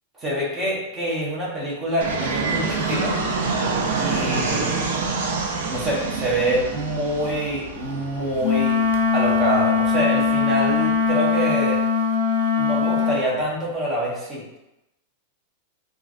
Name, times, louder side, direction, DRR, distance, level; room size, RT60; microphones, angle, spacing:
voice 1, 0.2-3.2 4.0-4.9 5.7-8.8 9.1-11.8 12.5-14.6, equal, 20° right, -6 dB, 0.8 m, -25 dB
Fixed-wing aircraft airplane, 2.0-11.0, right 4 dB, 75° right, 0.4 m, -27 dB
Wind instrument woodwind instrument, 8.4-13.2, left 5 dB, 80° left, 0.5 m, -21 dB
3.1 x 2.4 x 2.5 m, 0.92 s
supercardioid pair, 160°, 0 cm